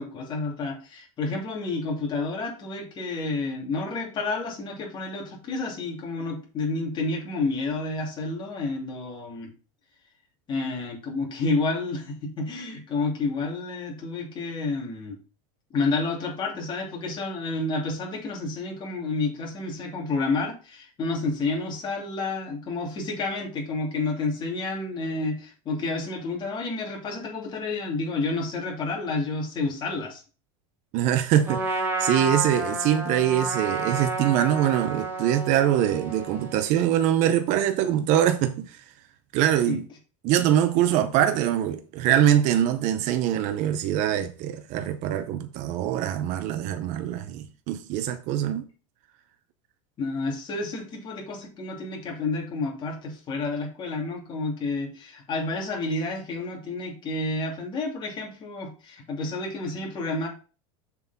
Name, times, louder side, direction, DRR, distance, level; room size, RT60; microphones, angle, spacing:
voice 1, 0.0-9.5 10.5-15.2 15.7-30.2 39.7-39.8 50.0-60.3, left 3 dB, 30° left, 2.6 m, -30 dB
voice 2, 30.9-38.8 39.3-39.8 40.2-48.6, right 11 dB, 45° right, 0.7 m, -23 dB
Trumpet, 31.5-36.7, right 2 dB, 15° right, 1.6 m, -30 dB
6.8 x 4.6 x 4.1 m
supercardioid pair, 135°, 17 cm